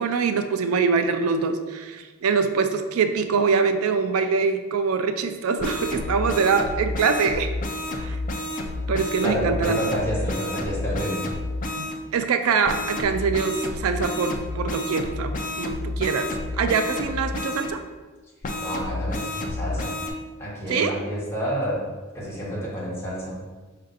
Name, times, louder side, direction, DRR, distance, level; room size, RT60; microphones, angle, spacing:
voice 1, 0.0-7.5 8.0-8.2 8.9-9.8 11.8-16.3 16.6-17.8 20.7-21.0, right 5 dB, 80° right, 8 dB, 0.4 m, -24 dB
sound 1, 5.6-12.0 12.6-17.7 18.4-20.1, left 1 dB, 40° left, 0.5 m, -30 dB
voice 2, 9.2-11.2 18.6-19.9 20.4-21.8 22.1-23.4, equal, 10° left, -7 dB, 1.3 m, -29 dB
5.1 x 2.6 x 4.0 m, 1.3 s
head